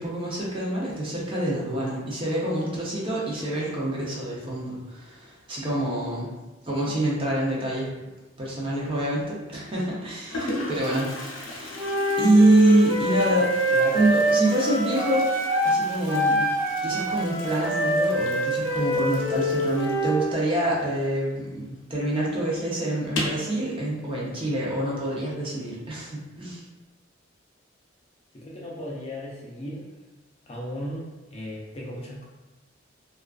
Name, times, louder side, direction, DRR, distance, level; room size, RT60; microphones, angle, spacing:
voice 1, 0.0-6.3 6.6-7.9 8.4-13.5 13.9-15.3 15.6-16.5 16.8-26.6, right 1 dB, 30° right, -5 dB, 0.6 m, -26 dB
Toilet flush, 8.9-9.3 10.0-10.1 10.3-21.6 21.8-21.9 22.3-22.4 23.0-23.5, left 2 dB, 85° left, 0.5 m, -38 dB
Wind instrument woodwind instrument, 11.8-15.8 16.1-20.3, right 1 dB, 60° right, 1.0 m, -25 dB
voice 2, 28.3-29.9 30.5-32.2, left 1 dB, 30° left, -4 dB, 0.4 m, -36 dB
2.3 x 2.3 x 2.3 m, 1.1 s
head